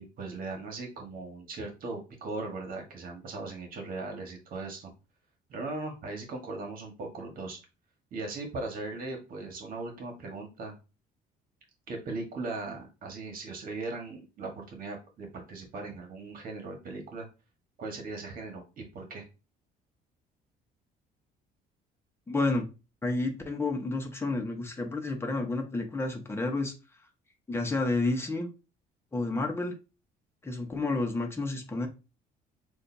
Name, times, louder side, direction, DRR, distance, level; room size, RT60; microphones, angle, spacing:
voice 1, 0.0-4.9 5.5-7.6 8.1-10.7 11.9-17.3 17.8-19.2, right 3 dB, 60° right, 2 dB, 1.5 m, -38 dB
voice 2, 22.3-22.7 23.0-26.7 27.5-28.5 29.1-29.7 30.4-31.9, left 2 dB, 15° left, 3 dB, 1.0 m, -30 dB
6.5 x 2.6 x 2.7 m, 0.29 s
cardioid pair, 110°, 17 cm